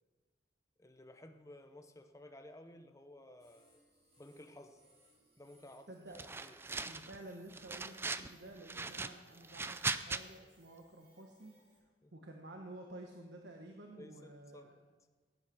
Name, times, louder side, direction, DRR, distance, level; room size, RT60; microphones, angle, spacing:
voice 1, 0.8-3.8 4.2-4.8 5.4-6.6 12.0-12.1 14.0-14.8, left 1 dB, 20° left, 6 dB, 0.8 m, -55 dB
sound 1, 3.4-11.8, right 1 dB, 35° right, 4.6 m, -68 dB
voice 2, 5.9-6.2 6.8-11.5 12.1-14.8, right 1 dB, 80° right, 2 dB, 1.2 m, -51 dB
sound 2, 6.2-7.2 7.5-8.3 8.7-10.2, right 3 dB, 15° right, 0.4 m, -39 dB
16.0 x 8.9 x 6.2 m, 1.4 s
head